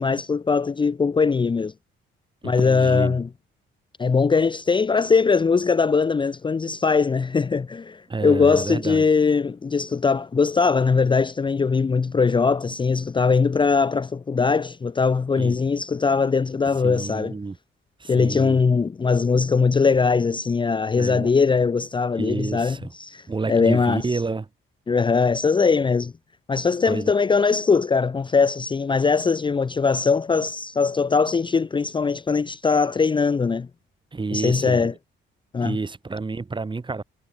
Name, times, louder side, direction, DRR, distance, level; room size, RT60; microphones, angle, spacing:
voice 1, 0.0-1.7 2.4-3.3 4.0-17.3 18.1-24.2 24.9-26.1 26.5-33.7 34.3-34.9 35.5-35.8, left 5 dB, 25° left, 0.6 m, -21 dB
voice 2, 2.4-3.2 8.1-9.1 15.4-15.6 16.7-17.6 18.0-18.6 21.0-21.3 22.1-22.9 23.3-24.5 26.9-27.1 34.1-34.9 35.6-37.0, right 4 dB, 25° right, 2.1 m, -29 dB
cardioid pair, 90°, 20 cm